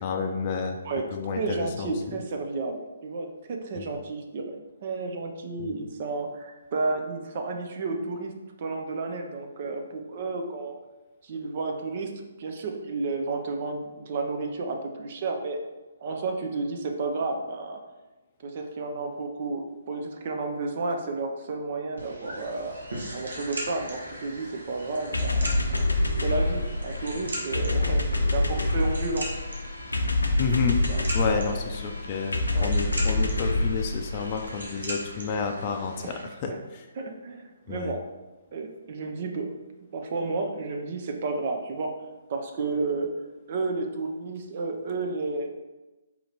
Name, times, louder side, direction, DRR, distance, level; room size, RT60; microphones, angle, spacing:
voice 1, 0.0-0.8 1.1-2.2 3.8-3.9 5.6-5.7 30.4-30.8 31.1-36.9 37.7-37.9, left 5 dB, 35° left, 3 dB, 0.4 m, -30 dB
voice 2, 0.8-8.3 8.6-10.8 11.2-15.6 16.0-17.8 18.4-22.7 23.1-29.3 30.9-31.6 32.5-32.7 36.0-36.6 37.0-38.1 38.5-39.6 39.9-42.0 42.3-43.1 43.5-45.5, right 3 dB, 45° right, 3 dB, 0.6 m, -32 dB
sound 1, 22.0-36.2, right 1 dB, 80° right, 1.2 m, -39 dB
sound 2, 25.1-34.7, left 2 dB, 90° left, 0.6 m, -26 dB
4.2 x 2.9 x 4.0 m, 1.1 s
figure-of-eight pair, 140°, 0 cm